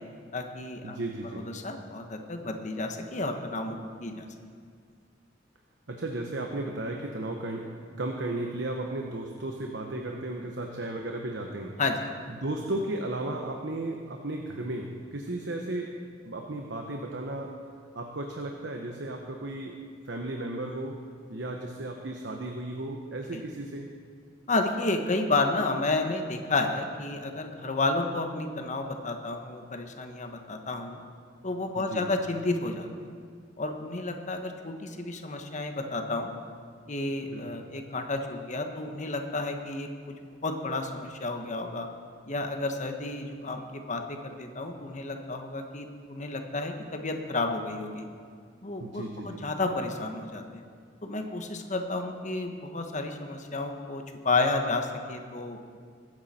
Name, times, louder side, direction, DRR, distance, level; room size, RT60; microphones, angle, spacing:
voice 1, 0.3-1.0 1.3-4.3 11.8-12.1 23.3-23.4 24.5-31.0 31.4-32.9 33.6-36.3 36.9-40.1 40.4-41.9 42.3-48.1 48.6-50.6 51.0-55.7, left 2 dB, 40° left, 5 dB, 1.2 m, -31 dB
voice 2, 0.8-1.5 5.9-7.7 8.0-11.7 12.4-15.9 16.2-17.5 17.9-19.8 20.1-21.0 21.3-23.9 31.8-32.1 37.3-37.6 48.8-49.4, right 2 dB, 65° right, 2 dB, 1.1 m, -34 dB
22.0 x 9.5 x 4.3 m, 2.1 s
head